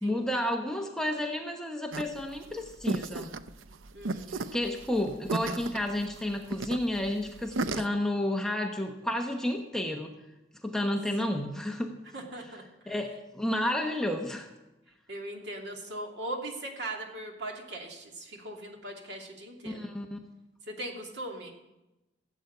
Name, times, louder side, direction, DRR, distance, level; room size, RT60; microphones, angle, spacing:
voice 1, 0.0-3.3 4.3-10.1 10.6-12.0 12.9-14.5 19.6-20.2, left 1 dB, 5° left, 2 dB, 0.9 m, -31 dB
sound 1, 1.9-7.9, right 3 dB, 85° right, 0.6 m, -35 dB
voice 2, 3.9-4.6 10.7-10.9 12.1-12.9 15.1-19.9 20.7-21.5, right 1 dB, 60° right, 1 dB, 2.6 m, -40 dB
15.5 x 8.1 x 8.0 m, 0.99 s
head